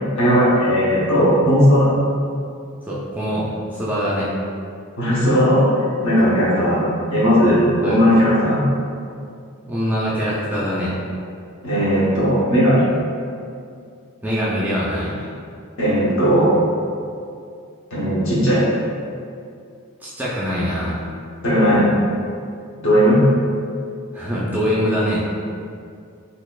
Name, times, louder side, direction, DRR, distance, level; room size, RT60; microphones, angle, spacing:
voice 1, 0.2-1.9 5.0-5.7 6.0-6.8 7.1-8.6 11.6-12.9 15.8-16.5 17.9-18.6 21.4-21.9 22.8-23.2, equal, 60° left, -8 dB, 1.0 m, -16 dB
voice 2, 2.9-4.3 7.8-8.2 9.7-11.0 14.2-15.3 20.0-21.0 24.1-25.3, equal, 10° right, -7 dB, 0.4 m, -23 dB
4.0 x 2.7 x 2.3 m, 2.4 s
head